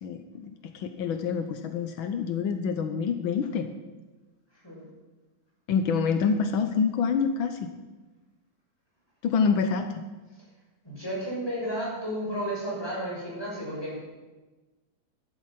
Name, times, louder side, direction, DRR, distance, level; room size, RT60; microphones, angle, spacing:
voice 1, 0.0-3.7 5.7-7.7 9.2-10.0, left 6 dB, 85° left, 8 dB, 1.7 m, -27 dB
voice 2, 10.8-14.0, equal, 10° left, -5 dB, 6.6 m, -32 dB
14.5 x 12.5 x 5.9 m, 1.2 s
omnidirectional pair, 2.2 m